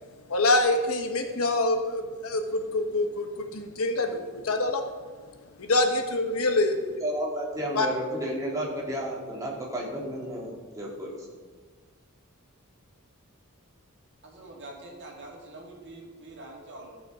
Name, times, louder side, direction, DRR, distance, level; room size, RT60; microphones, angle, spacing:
voice 1, 0.3-3.3 3.5-4.8 5.6-6.8 7.7-7.9, left 2 dB, 75° left, 5 dB, 1.1 m, -25 dB
voice 2, 7.0-11.2, right 1 dB, 15° right, -4 dB, 2.4 m, -32 dB
voice 3, 14.2-17.0, right 2 dB, 55° right, -1 dB, 2.2 m, -45 dB
14.0 x 5.7 x 4.9 m, 1.5 s
head